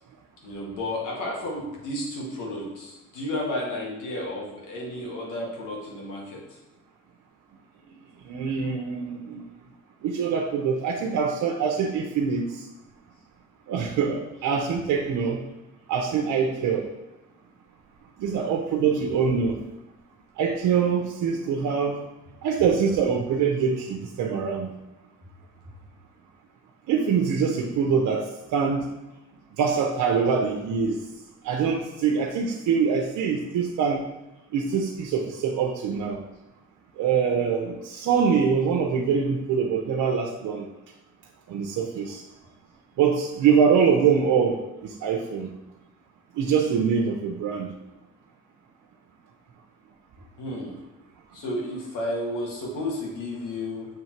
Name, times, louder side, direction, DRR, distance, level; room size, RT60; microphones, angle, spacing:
voice 1, 0.4-6.4 30.3-30.4 50.4-50.8 51.3-53.9, left 1 dB, 85° left, -3 dB, 1.9 m, -32 dB
voice 2, 8.3-9.4 10.0-12.6 13.7-15.4 15.9-16.9 18.2-19.6 20.4-22.0 22.4-24.7 26.9-28.9 29.6-31.0 31.4-34.0 34.5-36.2 37.0-40.7 41.5-42.2 43.0-45.5 46.3-47.7, right 6 dB, 80° right, 1 dB, 0.7 m, -24 dB
7.1 x 3.2 x 4.5 m, 0.97 s
cardioid pair, 90°, 30 cm